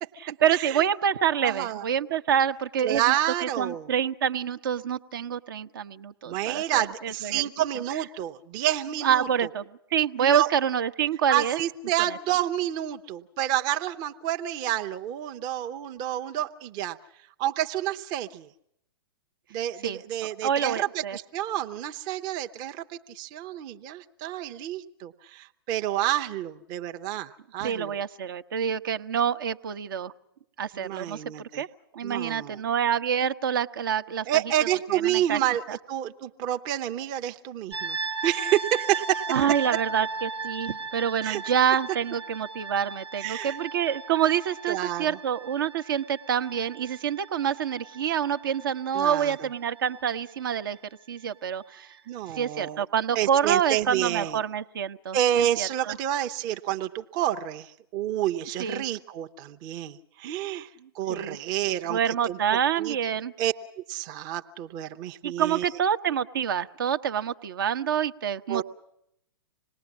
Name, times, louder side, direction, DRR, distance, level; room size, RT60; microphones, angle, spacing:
voice 1, 0.2-7.4 9.0-9.6 9.9-11.6 19.8-20.0 20.4-21.2 27.6-30.1 30.6-31.7 31.9-34.3 34.9-35.4 35.7-35.8 39.3-50.8 51.1-51.9 52.3-55.9 58.6-58.9 61.1-61.4 61.9-63.3 65.2-68.6, right 8 dB, 55° right, 10 dB, 1.0 m, -27 dB
voice 2, 1.4-1.8 2.8-3.9 6.3-9.5 10.2-10.5 11.3-17.0 17.4-18.5 19.5-28.0 30.7-31.6 32.0-32.6 34.3-38.0 38.2-39.4 41.2-41.4 43.2-43.6 44.7-45.2 48.9-49.4 52.1-52.8 53.1-54.4 55.1-60.7 60.9-62.4 62.8-62.9 63.4-63.5 63.9-65.7 68.5-68.6, right 12 dB, 30° right, 6 dB, 0.9 m, -29 dB
sound 1, 37.7-50.6, right 4 dB, 80° right, 1.2 m, -37 dB
26.5 x 19.5 x 7.3 m, 0.77 s
figure-of-eight pair, 110°, 13 cm